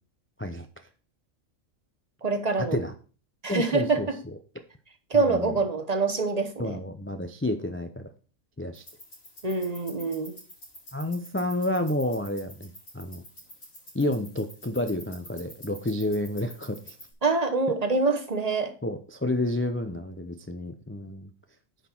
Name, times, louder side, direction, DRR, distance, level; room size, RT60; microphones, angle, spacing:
voice 1, 2.2-2.8 3.4-4.2 5.1-6.8 9.4-10.4 17.2-18.7, right 3 dB, 30° right, 7 dB, 1.1 m, -25 dB
voice 2, 3.5-4.1 5.1-5.5 6.6-8.1 8.6-8.8 10.9-13.2 13.9-17.0 18.8-21.3, left 1 dB, 20° left, 7 dB, 0.4 m, -30 dB
sound 1, 8.7-17.1, equal, 80° left, 5.7 m, -48 dB
9.9 x 5.8 x 4.5 m, 0.37 s
omnidirectional pair, 1.4 m